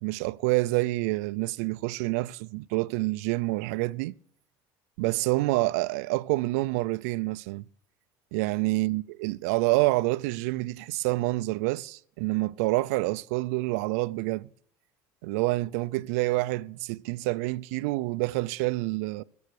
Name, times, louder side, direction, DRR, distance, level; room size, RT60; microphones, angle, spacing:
voice 1, 0.0-4.1 5.0-7.7 8.3-14.5 15.2-19.2, right 21 dB, 75° right, 0.5 m, -27 dB
20.5 x 7.2 x 6.5 m
cardioid pair, 180°, 8 cm